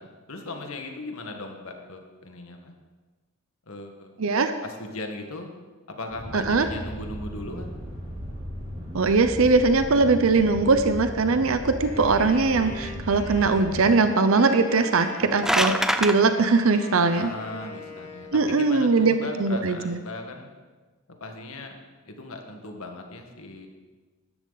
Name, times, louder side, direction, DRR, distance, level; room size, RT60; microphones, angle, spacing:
voice 1, 0.0-2.7 3.7-4.1 4.6-5.5 5.9-7.7 17.1-20.5 21.2-21.8 22.0-23.7, left 2 dB, 75° left, 4 dB, 1.6 m, -38 dB
voice 2, 4.2-4.5 6.3-6.7 8.9-17.3 18.3-20.0, right 3 dB, 70° right, 9 dB, 0.6 m, -21 dB
sound 1, 6.1-13.9, equal, 30° right, 4.1 m, -36 dB
Wind instrument woodwind instrument, 11.8-18.5, left 2 dB, 35° left, 1.6 m, -43 dB
sound 2, 15.1-16.2, equal, ahead, 0.4 m, -24 dB
13.0 x 11.0 x 4.0 m, 1.3 s
head